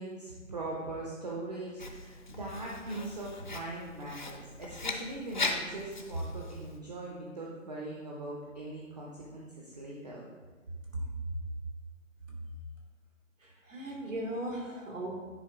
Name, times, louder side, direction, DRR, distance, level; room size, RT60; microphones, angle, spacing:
voice 1, 0.0-10.3, right 2 dB, 35° right, -3 dB, 0.7 m, -40 dB
Writing, 1.8-6.8, left 3 dB, 40° left, 0.5 m, -39 dB
voice 2, 13.4-15.2, right 1 dB, 80° right, -1 dB, 2.3 m, -38 dB
9.8 x 4.3 x 3.5 m, 1.4 s
hypercardioid pair, 170°, 38 cm